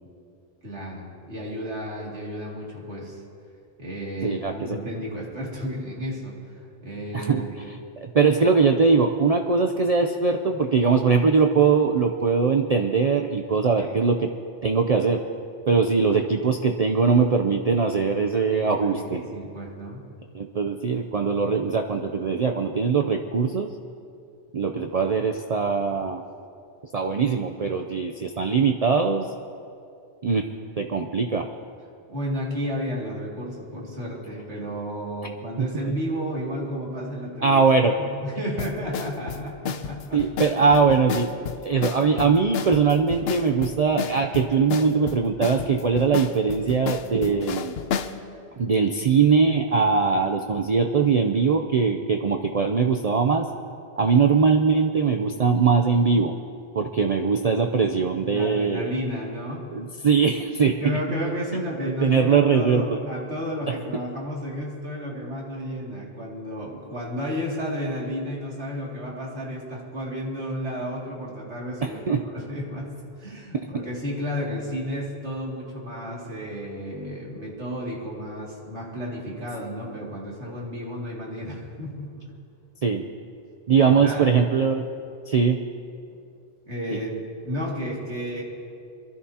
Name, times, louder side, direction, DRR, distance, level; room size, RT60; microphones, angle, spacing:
voice 1, 0.6-3.2 3.8-7.6 13.8-14.0 18.3-20.0 32.1-37.6 38.0-40.5 58.3-59.7 60.6-82.2 83.8-84.4 86.7-88.4, equal, 85° right, -4 dB, 2.8 m, -32 dB
voice 2, 4.2-4.8 7.1-7.4 8.0-14.3 14.6-15.2 15.7-19.2 20.3-23.7 24.5-26.2 26.9-29.3 30.2-30.5 30.8-31.5 35.6-35.9 37.4-37.9 40.1-41.3 41.6-47.8 48.6-53.5 54.0-56.3 56.7-58.9 59.7-60.7 62.0-62.8 63.7-63.8 71.8-72.2 82.8-83.0 83.7-84.9 85.3-85.6 86.9-87.0, right 5 dB, 45° right, 4 dB, 0.6 m, -21 dB
sound 1, 38.6-48.2, left 7 dB, 70° left, 0.8 m, -31 dB
23.5 x 13.0 x 2.8 m, 2.4 s
omnidirectional pair, 1.1 m